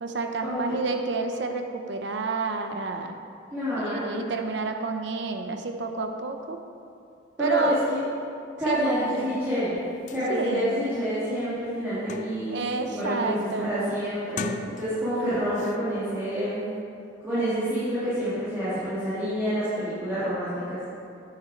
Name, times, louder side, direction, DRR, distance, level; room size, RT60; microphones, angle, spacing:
voice 1, 0.0-3.2 3.8-6.6 7.4-7.8 8.7-9.4 10.3-10.7 12.5-13.8, right 3 dB, 65° right, 5 dB, 0.7 m, -30 dB
voice 2, 3.5-4.2 7.4-8.0 8.6-9.8 10.1-16.6 17.2-20.8, equal, 10° right, -15 dB, 2.4 m, -28 dB
sound 1, 9.8-9.9 10.1-10.2 10.8-10.9 11.3-12.6 13.0-13.4 14.2-15.2 15.5-15.8, left 4 dB, 40° left, 0.3 m, -38 dB
9.6 x 6.9 x 4.4 m, 2.5 s
head